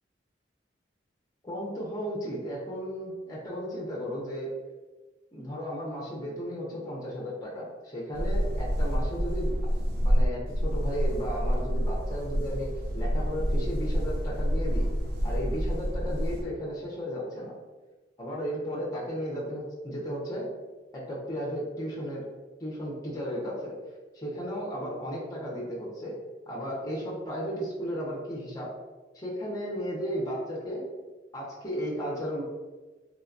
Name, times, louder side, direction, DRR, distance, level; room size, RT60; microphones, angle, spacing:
voice 1, 1.4-4.5 5.3-9.7 10.0-14.9 15.2-17.5 18.2-20.5 20.9-22.2 22.6-23.7 24.1-26.2 26.5-28.7 29.1-30.8 31.3-32.4, equal, 20° left, -5 dB, 0.5 m, -34 dB
sound 1, 8.1-16.4, equal, 55° right, 0.4 m, -28 dB
3.1 x 2.1 x 2.4 m, 1.2 s
head